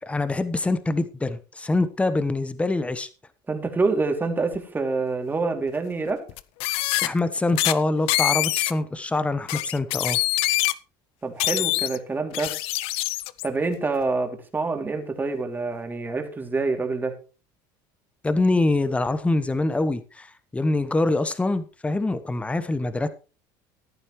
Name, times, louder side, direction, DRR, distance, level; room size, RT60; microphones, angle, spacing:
voice 1, 0.0-3.1 7.0-10.2 18.2-23.1, left 2 dB, 10° left, 12 dB, 1.2 m, -24 dB
voice 2, 3.5-6.2 11.2-12.5 13.4-17.1, right 3 dB, 20° right, 4 dB, 2.9 m, -26 dB
sound 1, 4.5-4.6 6.3-7.1 7.6-7.7 8.1-8.7 9.5-10.7 11.4-12.0 12.3-13.5, left 18 dB, 65° left, 0.6 m, -24 dB
14.5 x 11.0 x 3.2 m, 0.34 s
supercardioid pair, 95°, 10 cm